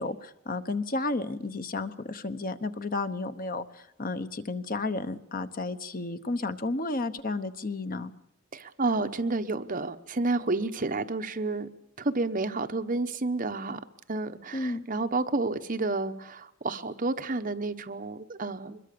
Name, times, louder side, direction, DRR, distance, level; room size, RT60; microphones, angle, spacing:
voice 1, 0.0-8.1 14.5-14.8, left 3 dB, 45° left, 11 dB, 1.1 m, -32 dB
voice 2, 8.5-11.7 12.0-18.8, right 3 dB, 45° right, 8 dB, 1.0 m, -30 dB
24.0 x 21.5 x 6.9 m, 0.82 s
head